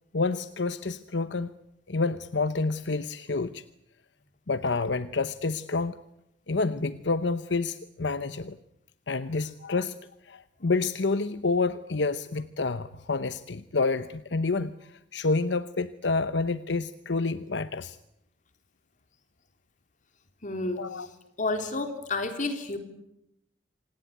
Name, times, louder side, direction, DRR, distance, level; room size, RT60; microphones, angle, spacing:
voice 1, 0.1-1.5 1.9-3.6 4.5-6.0 6.5-8.6 9.1-10.0 10.2-18.0 20.8-21.1, left 3 dB, 75° left, 13 dB, 0.9 m, -28 dB
voice 2, 20.4-20.8 21.4-22.8, left 2 dB, 45° left, 7 dB, 3.6 m, -30 dB
27.0 x 18.0 x 10.0 m, 0.85 s
head